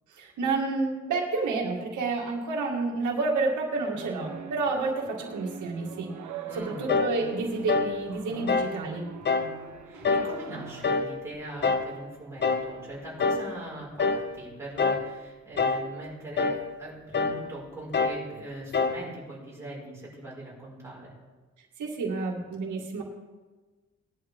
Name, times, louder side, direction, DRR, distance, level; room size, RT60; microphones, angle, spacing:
voice 1, 0.1-6.2 6.5-9.1 21.8-23.0, right 3 dB, 90° right, -1 dB, 2.1 m, -29 dB
sound 1, 3.8-10.9, right 6 dB, 75° right, 1.4 m, -43 dB
voice 2, 6.5-7.0 9.9-21.1, right 1 dB, 10° right, -6 dB, 5.3 m, -41 dB
sound 2, 6.9-7.2 7.7-8.0 8.5-8.8 9.3-9.5 10.0-10.4 10.8-11.1 11.6-11.9 12.4-12.7 13.2-13.5 14.0-14.3 14.8-15.1 15.6-15.9 16.4-16.6 17.1-17.4 17.9-18.2 18.7-19.0, left 4 dB, 35° left, 0.7 m, -25 dB
18.5 x 11.0 x 3.7 m, 1.3 s
wide cardioid pair, 145°, 29 cm